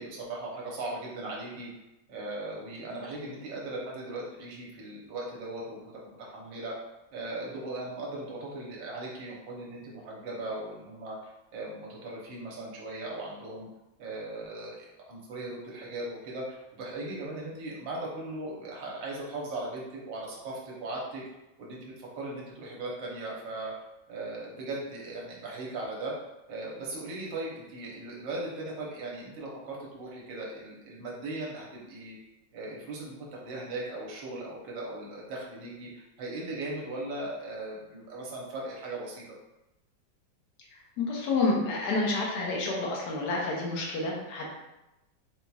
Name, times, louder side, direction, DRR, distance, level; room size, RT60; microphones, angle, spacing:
voice 1, 0.0-1.7 2.1-6.7 7.1-13.7 14.0-21.2 21.6-23.7 24.1-26.1 26.5-32.2 32.5-39.4, right 2 dB, 75° right, -3 dB, 1.6 m, -38 dB
voice 2, 40.7-44.4, left 3 dB, 65° left, -2 dB, 1.2 m, -29 dB
4.0 x 2.8 x 2.3 m, 0.95 s
omnidirectional pair, 2.1 m